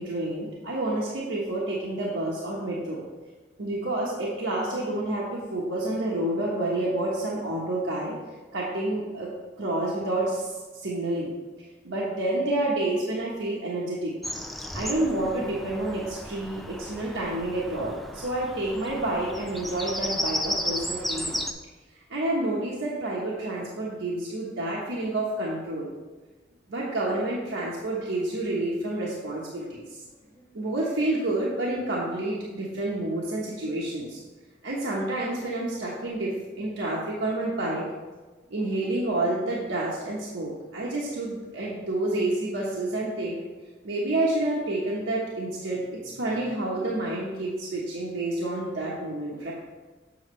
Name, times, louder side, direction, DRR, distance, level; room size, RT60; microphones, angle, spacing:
voice 1, 0.0-3.0 3.6-8.1 8.5-9.3 9.6-11.3 11.8-14.2 14.7-21.4 22.1-25.9 26.7-30.0 30.5-34.2 34.6-37.9 38.5-43.4 43.8-49.5, right 2 dB, 75° right, -5 dB, 1.1 m, -29 dB
Bird vocalization bird call bird song, 14.2-21.5, equal, ahead, 0.3 m, -34 dB
voice 2, 30.1-30.7 33.7-33.9 38.6-38.8 46.0-46.5 49.4-49.5, equal, 20° left, -7 dB, 1.0 m, -54 dB
7.2 x 6.9 x 3.2 m, 1.3 s
head